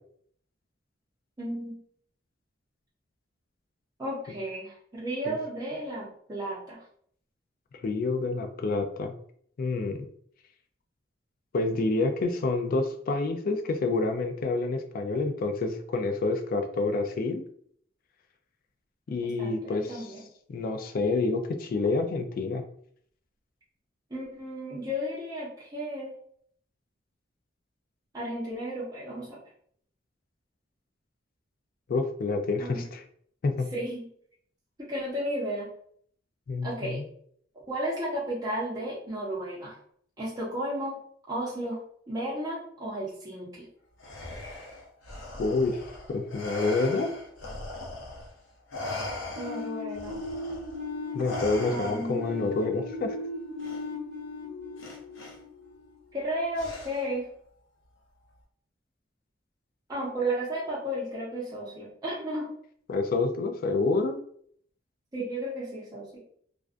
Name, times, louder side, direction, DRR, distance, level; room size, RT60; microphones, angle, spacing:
voice 1, 1.4-1.8 4.0-6.8 19.2-20.2 24.1-26.1 28.1-29.4 32.6-32.8 33.7-34.0 34.8-35.7 36.6-37.0 37.7-39.7 40.2-41.0 41.3-41.8 42.1-43.5 49.4-50.2 51.7-52.5 56.1-57.3 59.9-62.5 65.1-66.2, right 1 dB, 20° right, -7 dB, 0.5 m, -33 dB
voice 2, 7.8-9.1 9.6-10.1 11.5-17.4 19.1-20.1 20.5-22.6 31.9-33.0 33.4-33.7 36.5-37.0 45.4-45.8 46.1-47.1 51.1-53.2 62.9-64.2, left 3 dB, 50° left, 6 dB, 0.3 m, -28 dB
Respiratory sounds, 44.0-48.3 48.7-52.3 53.6-53.8 54.8-55.3 56.5-57.2, left 2 dB, 85° left, 0.6 m, -39 dB
sound 1, 49.4-56.1, left 3 dB, 60° right, 0.8 m, -38 dB
2.4 x 2.1 x 2.4 m, 0.63 s
head